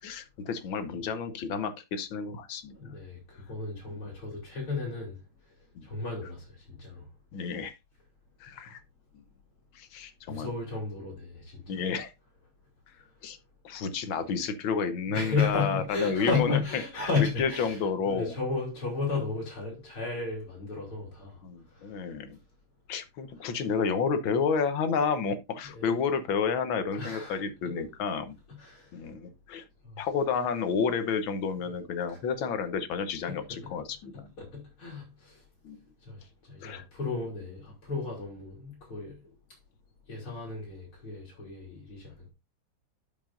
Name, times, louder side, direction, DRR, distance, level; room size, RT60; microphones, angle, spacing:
voice 1, 0.0-2.8 3.9-4.0 5.8-5.9 7.3-7.7 8.4-8.8 9.1-9.2 9.7-10.5 11.7-12.1 13.2-13.4 13.6-17.1 17.4-18.4 21.4-22.4 22.9-28.4 28.9-29.6 30.0-34.3 35.6-35.8 36.6-36.8, left 5 dB, 70° left, 1.8 m, -30 dB
voice 2, 2.7-5.2 5.8-7.1 10.3-11.8 15.1-17.8 18.1-21.4 21.7-21.9 23.4-23.5 25.7-25.9 27.0-27.9 28.6-28.9 29.8-30.0 32.1-32.2 33.3-33.7 34.1-35.4 36.0-39.2 40.1-42.3, left 4 dB, 90° left, 4.2 m, -34 dB
12.5 x 5.4 x 2.6 m
omnidirectional pair, 2.3 m